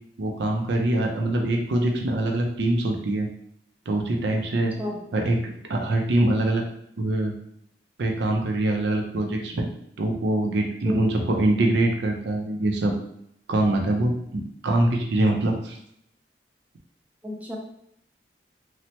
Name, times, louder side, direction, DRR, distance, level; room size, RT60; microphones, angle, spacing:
voice 1, 0.2-3.3 3.9-4.7 5.1-5.4 5.7-6.6 7.0-7.3 8.0-9.7 10.0-12.9 13.5-15.8, right 1 dB, 80° right, 2 dB, 0.5 m, -24 dB
voice 2, 17.2-17.6, left 1 dB, 10° right, -1 dB, 0.4 m, -31 dB
3.1 x 2.0 x 2.8 m, 0.71 s
head